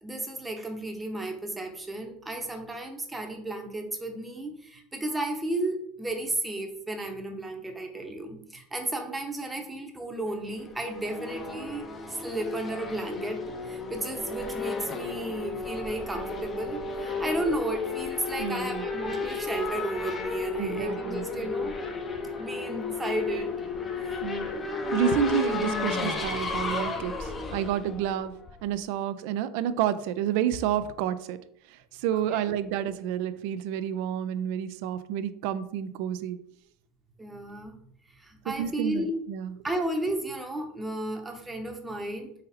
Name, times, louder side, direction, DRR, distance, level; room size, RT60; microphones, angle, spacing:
voice 1, 0.0-21.8 22.3-23.7 24.0-24.2 32.1-32.4 37.2-37.7 38.2-39.1 39.6-42.3, right 1 dB, 10° right, 4 dB, 0.8 m, -33 dB
Race car auto racing / Accelerating revving vroom, 10.6-28.7, left 4 dB, 25° left, 0.6 m, -33 dB
voice 2, 18.4-18.8 20.6-21.7 24.2-24.5 24.9-28.3 28.6-31.4 32.0-36.4 38.6-39.5, right 10 dB, 70° right, 14 dB, 0.3 m, -30 dB
4.1 x 3.9 x 2.7 m, 0.65 s
supercardioid pair, 115°, 0 cm